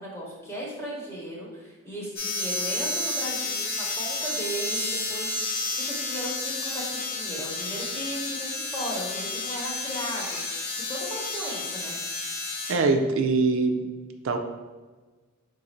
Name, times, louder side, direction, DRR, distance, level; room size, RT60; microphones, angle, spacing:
voice 1, 0.0-5.5 5.8-12.0, equal, 15° left, -4 dB, 1.0 m, -36 dB
sound 1, 2.2-12.7, left 2 dB, 45° left, 0.7 m, -31 dB
voice 2, 12.7-13.9 14.2-14.4, right 3 dB, 65° right, 4 dB, 0.4 m, -23 dB
3.9 x 2.5 x 4.2 m, 1.3 s
head